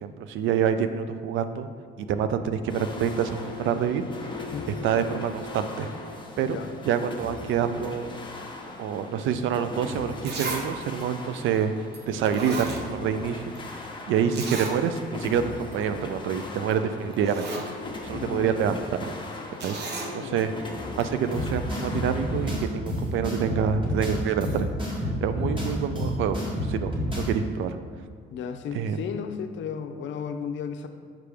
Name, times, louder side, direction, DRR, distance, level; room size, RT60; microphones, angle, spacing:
voice 1, 0.0-1.7 2.0-4.3 4.7-5.9 6.4-6.6 6.8-8.1 8.8-17.5 18.0-19.1 19.6-20.5 20.9-24.7 25.2-26.4 26.7-27.8 28.7-29.0, right 7 dB, 80° right, 10 dB, 0.4 m, -27 dB
sound 1, 2.7-22.5, left 2 dB, 25° left, 0.9 m, -39 dB
Zipper (clothing), 9.7-9.8 10.2-10.7 11.0-11.1 11.9-12.0 12.3-13.3 13.5-13.6 14.3-14.8 15.2-15.3 15.6-15.8 16.7-16.8 17.1-17.7 19.6-20.1 21.0-21.1, right 3 dB, 60° right, 0.9 m, -33 dB
voice 2, 18.1-18.6 20.2-20.5 28.3-30.9, left 7 dB, 70° left, 7 dB, 0.5 m, -34 dB
sound 2, 21.3-27.3, equal, 25° right, 1.4 m, -29 dB
6.0 x 4.9 x 3.4 m, 2.1 s
cardioid pair, 90°, 20 cm